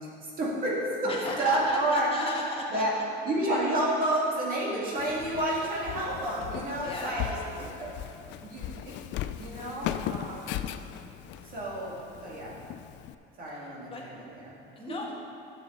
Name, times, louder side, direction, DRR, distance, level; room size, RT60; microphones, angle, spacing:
voice 1, 0.2-1.1 1.4-2.1 2.7-2.9 3.2-7.9 8.3-8.9 9.4-10.8 11.4-12.0 12.2-12.5 13.4-14.9, right 1 dB, 45° right, -5 dB, 2.3 m, -30 dB
voice 2, 1.0-3.0 6.8-7.3 13.5-14.0 14.7-15.1, left 1 dB, 25° left, -2 dB, 1.5 m, -35 dB
Walk footsteps, 5.0-13.1, left 11 dB, 65° left, 0.4 m, -38 dB
11.5 x 7.1 x 3.9 m, 2.6 s
cardioid pair, 140°, 20 cm